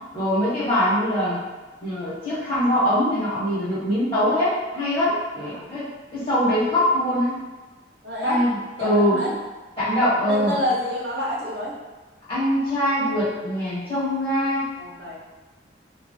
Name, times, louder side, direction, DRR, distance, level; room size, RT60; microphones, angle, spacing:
voice 1, 0.1-1.4 1.8-7.4 8.2-9.2 9.8-10.5 12.3-14.7, equal, 30° left, -10 dB, 1.1 m, -23 dB
voice 2, 8.0-8.4 8.8-9.3 10.3-11.7 14.8-15.2, left 1 dB, 65° right, -4 dB, 0.7 m, -28 dB
2.9 x 2.3 x 2.6 m, 1.2 s
head